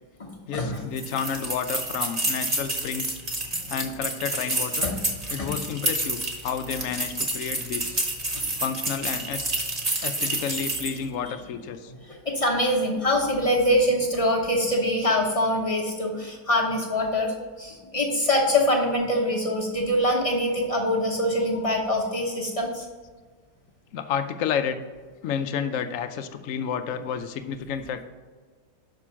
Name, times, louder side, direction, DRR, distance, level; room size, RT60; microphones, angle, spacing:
voice 1, 0.5-3.2 3.7-4.9 5.3-8.0 8.6-9.4 10.0-11.9 23.9-24.8 25.2-28.0, left 7 dB, 75° left, 9 dB, 0.7 m, -30 dB
sound 1, 1.0-11.0, right 2 dB, 25° right, 1.0 m, -29 dB
voice 2, 12.0-22.9, left 1 dB, 30° left, -2 dB, 0.7 m, -24 dB
6.1 x 5.2 x 5.7 m, 1.4 s
omnidirectional pair, 1.9 m